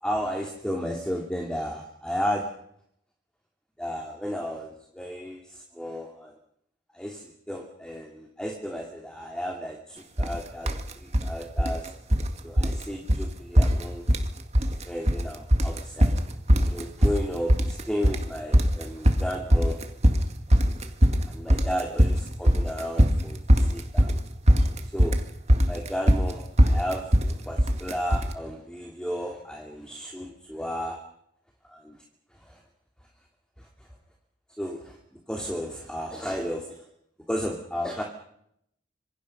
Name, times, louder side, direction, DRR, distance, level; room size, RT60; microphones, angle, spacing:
voice 1, 0.0-2.5 3.8-6.3 6.9-11.9 12.4-14.0 14.6-16.2 16.7-19.8 21.3-24.1 24.9-25.2 25.7-27.0 27.3-31.0 31.7-32.0 32.5-32.6 33.6-33.7 34.6-35.0 35.3-36.7 37.3-38.0, equal, 5° left, 0 dB, 2.7 m, -33 dB
sound 1, 10.2-10.4 10.7-11.3 11.6-12.3 12.6-12.8 13.1-13.2 13.6-14.3 14.5-15.2 15.5-28.3, equal, 35° right, 2.1 m, -20 dB
26.5 x 23.5 x 5.5 m, 0.73 s
head